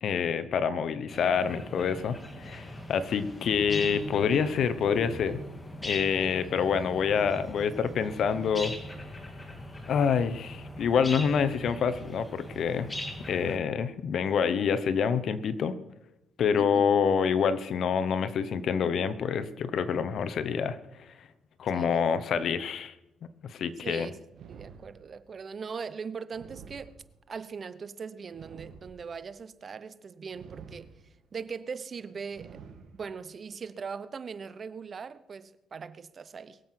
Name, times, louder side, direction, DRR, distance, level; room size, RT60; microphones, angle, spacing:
voice 1, 0.0-5.4 5.8-8.7 9.9-12.9 13.3-15.8 16.4-20.8 21.6-22.9 23.4-24.1, left 6 dB, 65° left, 1.0 m, -27 dB
sound 1, 1.1-13.6, left 1 dB, 20° left, 2.3 m, -40 dB
voice 2, 23.8-26.9 27.3-30.9 31.3-32.6 32.9-36.6, right 5 dB, 45° right, 0.8 m, -40 dB
sound 2, 24.3-25.4 26.3-27.4 28.3-29.4 30.3-31.3 32.3-33.3, right 6 dB, 75° right, 2.0 m, -49 dB
22.0 x 7.7 x 5.9 m
cardioid pair, 90°, 0 cm